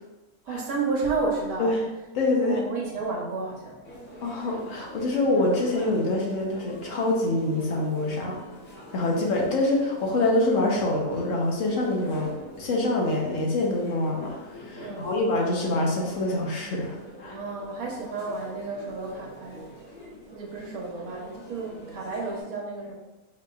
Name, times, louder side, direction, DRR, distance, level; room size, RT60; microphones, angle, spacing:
voice 1, 0.5-1.7 2.3-3.8 9.1-9.4 14.8-15.1 17.3-19.7 20.3-22.9, right 3 dB, 70° right, -2 dB, 1.1 m, -32 dB
voice 2, 2.1-2.6 4.2-8.4 8.9-12.3 12.6-17.4, left 2 dB, 60° left, -2 dB, 1.1 m, -25 dB
sound 1, 3.8-22.4, equal, 85° left, 1.9 m, -44 dB
4.9 x 2.9 x 2.3 m, 1.1 s
omnidirectional pair, 1.6 m